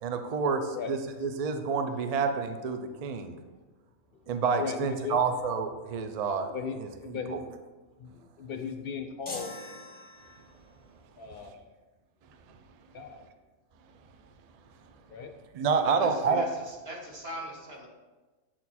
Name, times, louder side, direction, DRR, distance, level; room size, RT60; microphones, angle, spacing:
voice 1, 0.0-3.4 4.3-6.5 6.8-7.4 12.5-12.6 15.5-16.5, right 5 dB, 70° right, 7 dB, 0.3 m, -29 dB
voice 2, 0.7-1.0 3.2-3.3 4.2-4.3 4.6-5.2 6.2-6.3 6.5-7.5 8.0-9.6 11.2-11.7 12.9-13.2 15.1-15.3 15.7-16.4, left 6 dB, 60° left, 7 dB, 0.6 m, -38 dB
sound 1, 9.3-10.7, left 2 dB, 25° left, 1.0 m, -43 dB
voice 3, 15.9-17.9, equal, 50° right, -2 dB, 1.4 m, -42 dB
7.7 x 4.4 x 4.1 m, 1.2 s
omnidirectional pair, 1.4 m